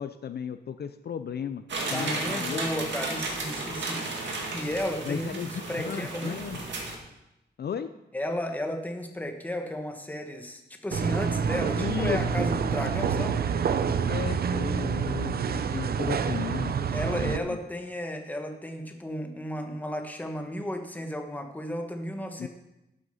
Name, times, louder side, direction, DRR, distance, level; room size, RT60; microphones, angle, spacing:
voice 1, 0.0-1.6 1.9-2.9 5.0-5.5 5.8-6.6 7.6-7.9 11.8-12.2 14.1-16.7 17.2-17.6 22.4-22.5, left 8 dB, 60° left, 11 dB, 0.5 m, -35 dB
sound 1, 1.7-7.0, right 2 dB, 80° right, 2.1 m, -34 dB
voice 2, 1.9-5.4 5.7-6.5 8.1-13.4 16.9-22.5, left 1 dB, 10° left, 4 dB, 1.2 m, -34 dB
sound 2, 10.9-17.4, right 6 dB, 60° right, 0.6 m, -27 dB
12.0 x 6.4 x 5.6 m, 0.91 s
wide cardioid pair, 145°, 18 cm